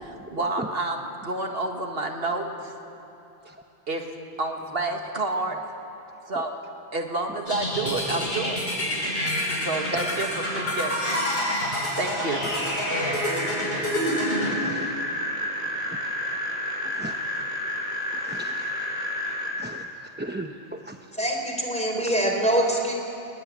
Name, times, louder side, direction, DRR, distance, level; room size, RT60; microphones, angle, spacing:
voice 1, 0.0-2.7 3.9-4.1 4.4-5.6 6.3-6.6 6.9-8.6 9.6-11.2 12.0-12.4, right 2 dB, 65° right, 3 dB, 2.0 m, -29 dB
sound 1, 7.5-14.5, equal, 65° left, 6.8 m, -28 dB
voice 2, 9.0-9.4 14.5-14.9 16.8-17.1 18.2-18.5 19.6-19.8 20.2-21.0, right 1 dB, 10° right, 4 dB, 0.8 m, -37 dB
sound 2, 11.8-19.5, left 1 dB, 40° left, 5.6 m, -30 dB
voice 3, 21.1-22.9, right 1 dB, 5° left, 1 dB, 3.9 m, -24 dB
23.0 x 20.0 x 9.9 m, 3.0 s
omnidirectional pair, 1.1 m